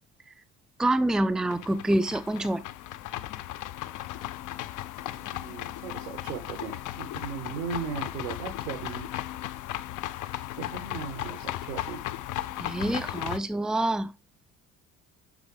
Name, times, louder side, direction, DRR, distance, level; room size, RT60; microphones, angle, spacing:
voice 1, 0.8-2.6 12.6-14.1, right 1 dB, ahead, 0.6 m, -26 dB
sound 1, 1.5-13.4, left 14 dB, 50° left, 0.9 m, -36 dB
voice 2, 5.1-9.1 10.6-12.1, right 6 dB, 75° right, 2.0 m, -37 dB
8.1 x 6.8 x 3.3 m
figure-of-eight pair, 50°, 39 cm